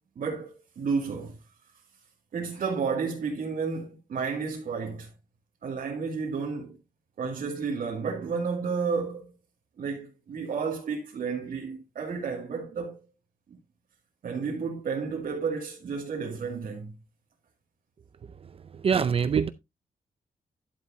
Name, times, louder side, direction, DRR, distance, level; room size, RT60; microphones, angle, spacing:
voice 1, 0.2-1.4 2.3-5.1 5.6-6.8 7.2-9.3 9.8-13.0 14.2-16.9, right 5 dB, 75° right, 2.4 m, -31 dB
voice 2, 18.4-19.5, right 6 dB, 40° right, 0.5 m, -25 dB
11.5 x 7.6 x 2.7 m
wide cardioid pair, 180°, 14 cm